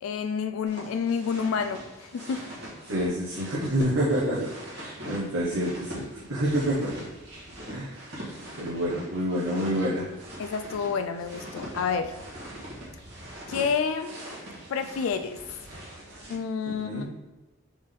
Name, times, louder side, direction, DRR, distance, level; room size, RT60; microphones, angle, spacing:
voice 1, 0.0-2.4 10.4-12.2 13.5-14.2 14.7-15.4 16.3-17.1, left 6 dB, 75° left, 8 dB, 0.3 m, -29 dB
sound 1, 0.7-16.3, equal, 50° right, 1.4 m, -43 dB
voice 2, 2.9-6.9 7.7-8.2 8.6-10.2 16.7-17.1, equal, 75° right, -7 dB, 1.0 m, -28 dB
3.9 x 3.5 x 3.7 m, 1.1 s
head